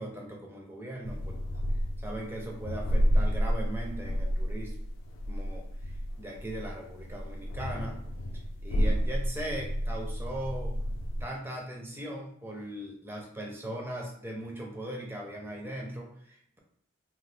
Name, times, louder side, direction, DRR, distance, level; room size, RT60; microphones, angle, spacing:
voice 1, 0.0-1.3 2.0-4.7 5.3-5.9 6.2-8.0 8.6-10.7 11.2-16.6, right 1 dB, 10° right, 0 dB, 0.4 m, -39 dB
sound 1, 1.0-11.2, equal, 60° left, 0.4 m, -31 dB
2.7 x 2.2 x 3.2 m, 0.65 s
head